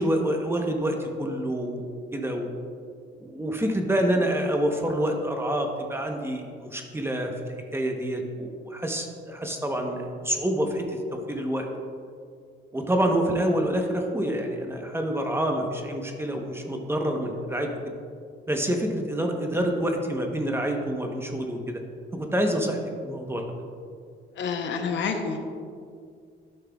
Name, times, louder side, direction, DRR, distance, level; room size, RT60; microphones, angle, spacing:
voice 1, 0.0-1.8 2.1-2.5 3.2-7.3 7.7-11.0 11.3-11.7 12.7-17.7 18.5-21.8 22.1-23.4, right 1 dB, 10° right, 3 dB, 0.8 m, -27 dB
voice 2, 24.4-25.4, left 5 dB, 70° left, 5 dB, 0.8 m, -28 dB
11.5 x 5.6 x 2.3 m, 2.2 s
cardioid pair, 90°, 20 cm